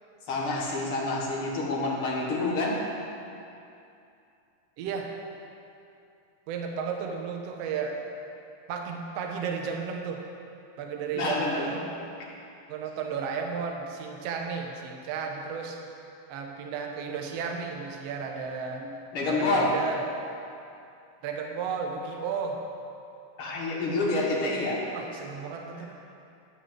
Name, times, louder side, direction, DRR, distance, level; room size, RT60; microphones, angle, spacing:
voice 1, 0.3-2.8 11.1-11.7 19.1-19.8 23.4-24.8, left 2 dB, 50° left, -4 dB, 1.9 m, -27 dB
voice 2, 4.8-5.1 6.5-8.0 8.7-10.2 10.8-12.0 12.7-15.8 16.3-19.0 19.3-20.0 21.2-22.6 24.9-25.9, right 5 dB, 65° right, 2 dB, 1.6 m, -33 dB
11.0 x 5.7 x 7.5 m, 2.6 s
omnidirectional pair, 3.9 m